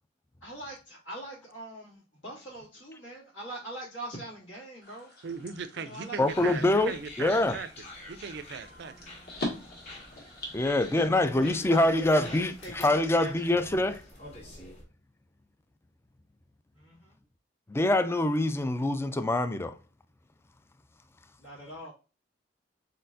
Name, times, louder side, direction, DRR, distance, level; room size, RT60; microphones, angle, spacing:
voice 1, 0.4-5.1 5.7-6.8 10.8-13.5 16.7-17.2 21.4-21.9, right 1 dB, 80° left, 2.2 m, -42 dB
sound 1, 4.8-13.7, left 1 dB, 55° left, 1.7 m, -44 dB
voice 2, 5.2-9.1, right 5 dB, 60° right, 0.5 m, -39 dB
voice 3, 6.2-6.9 7.2-7.5 10.5-14.0 17.7-19.7, left 1 dB, 15° left, 0.3 m, -25 dB
sound 2, 6.3-14.8, left 2 dB, 35° left, 1.9 m, -48 dB
4.4 x 4.1 x 2.6 m
head